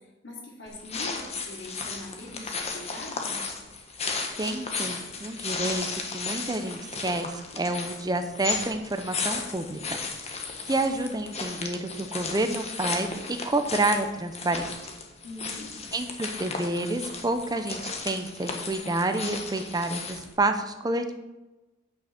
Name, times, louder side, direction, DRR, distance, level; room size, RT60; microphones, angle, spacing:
voice 1, 0.2-3.4 15.2-15.8, left 1 dB, 70° left, -4 dB, 2.9 m, -42 dB
sound 1, 0.7-20.3, left 4 dB, 35° left, 1.4 m, -35 dB
voice 2, 4.4-5.9 6.1-7.3 7.6-9.8 10.3-13.1 13.4-14.6 15.9-21.1, right 2 dB, 20° right, 7 dB, 0.7 m, -29 dB
9.0 x 6.2 x 5.9 m, 1.1 s
head